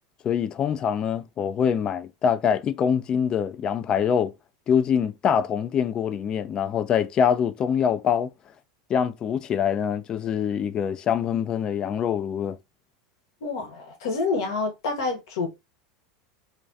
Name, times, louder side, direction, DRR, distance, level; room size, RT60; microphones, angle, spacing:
voice 1, 0.2-4.3 4.7-8.3 8.9-12.6, left 8 dB, 35° left, 0.3 m, -24 dB
voice 2, 13.4-15.5, left 3 dB, 70° left, 0.8 m, -28 dB
2.3 x 2.2 x 2.5 m
hypercardioid pair, 90°, 2 cm